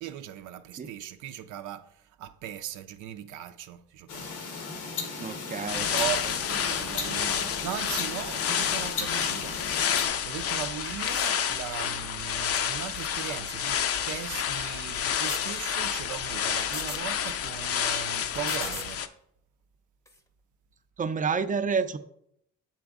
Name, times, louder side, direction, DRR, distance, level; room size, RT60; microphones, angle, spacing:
voice 1, 0.0-4.3 5.3-5.4 5.8-9.6 10.0-19.0, right 11 dB, 85° right, 0.5 m, -38 dB
sound 1, 4.1-10.1, left 4 dB, 90° left, 1.1 m, -36 dB
voice 2, 5.2-5.9 21.0-22.0, right 5 dB, 25° right, 0.5 m, -29 dB
sound 2, 5.7-19.1, left 8 dB, 50° left, 0.5 m, -29 dB
sound 3, 10.9-11.6 12.9-13.7 14.9-15.4 16.5-17.0 18.3-18.9 20.0-20.2, left 1 dB, 10° left, 0.7 m, -43 dB
7.0 x 4.2 x 3.6 m
cardioid pair, 90°, 30 cm